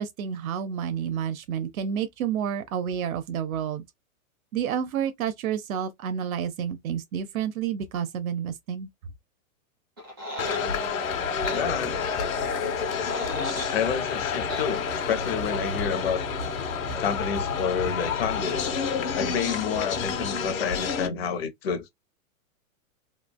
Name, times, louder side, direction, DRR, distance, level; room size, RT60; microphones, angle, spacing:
voice 1, 0.0-3.8 4.5-8.9, right 8 dB, 90° right, 0.6 m, -30 dB
sound 1, 10.0-10.6 11.4-11.6 12.8-13.8 14.5-14.7, equal, 20° right, 0.4 m, -36 dB
sound 2, 10.4-21.1, left 5 dB, 75° left, 1.0 m, -29 dB
voice 2, 11.5-12.0 13.7-16.2 17.0-18.6 19.1-21.9, left 7 dB, 45° left, 0.7 m, -29 dB
3.2 x 2.1 x 2.2 m
supercardioid pair, 180°, 41 cm